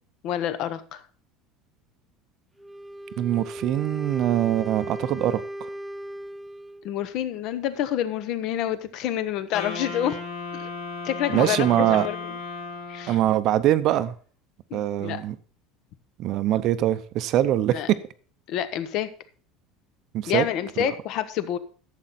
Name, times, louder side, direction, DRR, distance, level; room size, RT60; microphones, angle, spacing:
voice 1, 0.2-1.0 6.8-10.2 10.5-10.7 11.0-12.4 12.9-13.2 14.7-15.2 17.7-17.9 18.5-19.1 20.3-21.6, left 11 dB, 50° left, 13 dB, 0.9 m, -28 dB
Wind instrument woodwind instrument, 2.6-6.9, equal, 5° right, 0.4 m, -37 dB
voice 2, 3.2-5.7 11.3-12.1 13.1-14.1 14.7-15.4 16.2-17.8 20.1-20.4 20.8-20.9, right 12 dB, 45° right, 13 dB, 0.6 m, -23 dB
Wind instrument woodwind instrument 2, 9.5-13.4, left 4 dB, 85° left, 5.3 m, -35 dB
11.5 x 7.6 x 4.1 m, 0.42 s
cardioid pair, 155°, 0 cm